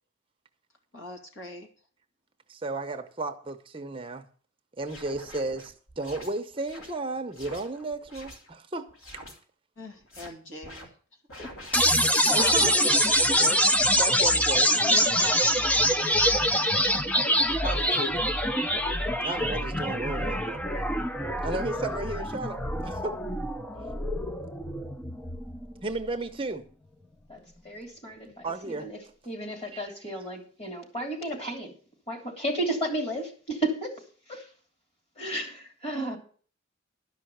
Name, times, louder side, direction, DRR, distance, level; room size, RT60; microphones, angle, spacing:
voice 1, 0.9-1.7 9.8-10.9 11.3-11.5 12.3-12.5 13.2-13.4 14.8-16.3 28.2-28.4, left 1 dB, 60° left, 2.6 m, -41 dB
voice 2, 2.5-4.3 4.8-8.9 12.3-13.7 14.0-14.7 17.6-18.2 19.2-20.6 21.4-23.2 23.7-23.9 25.8-26.7 28.4-28.9 29.7-29.8, right 2 dB, 25° right, 0.7 m, -34 dB
sound 1, 4.8-8.5 8.9-9.4 9.9-10.3 10.6-10.9 11.3-12.4 13.0-13.2 13.9-14.2, left 1 dB, 80° left, 3.1 m, -47 dB
sound 2, 11.7-25.7, equal, 5° left, 0.5 m, -25 dB
voice 3, 27.3-29.0 29.3-31.7 32.1-34.0 34.3-34.5 35.2-36.2, right 1 dB, 30° left, 2.9 m, -33 dB
12.0 x 5.7 x 7.8 m
head